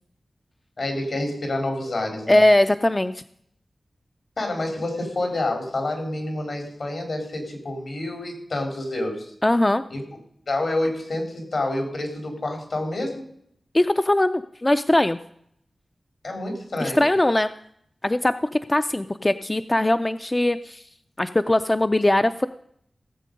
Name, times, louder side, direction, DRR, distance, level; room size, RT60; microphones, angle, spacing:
voice 1, 0.8-2.4 4.4-9.3 9.9-10.0 10.5-13.2 16.2-17.0, left 2 dB, 75° left, 3 dB, 3.6 m, -28 dB
voice 2, 2.3-3.2 9.4-9.8 13.7-15.2 16.8-17.5 18.0-18.3 18.7-20.8 21.2-22.5, left 1 dB, 25° left, 10 dB, 0.4 m, -20 dB
17.0 x 7.6 x 5.2 m, 0.69 s
wide cardioid pair, 85°, 0 cm